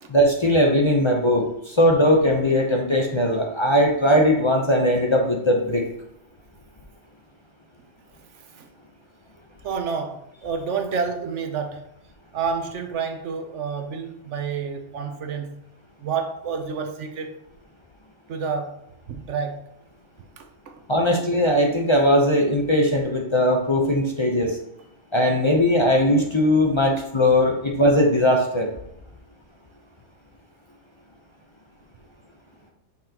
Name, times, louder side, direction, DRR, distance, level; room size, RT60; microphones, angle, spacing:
voice 1, 0.1-5.8 20.9-24.6 25.1-28.7, equal, 25° left, 0.8 m, -19 dB
voice 2, 8.3-8.7 9.6-11.9 12.3-15.6 16.0-17.4 18.3-18.8 19.1-19.7 20.4-20.8, right 5 dB, 75° right, 1.1 m, -29 dB
6.5 x 5.7 x 2.9 m
omnidirectional pair, 1.2 m